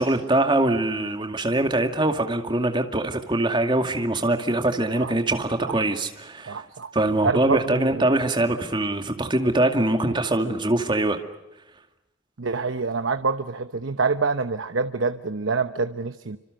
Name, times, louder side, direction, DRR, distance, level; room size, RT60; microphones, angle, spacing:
voice 1, 0.0-6.6 6.9-11.2, right 2 dB, 25° right, 2.2 m, -23 dB
voice 2, 6.5-6.9 7.2-8.1 12.4-16.4, right 4 dB, 90° right, 0.9 m, -26 dB
27.5 x 26.0 x 6.5 m
head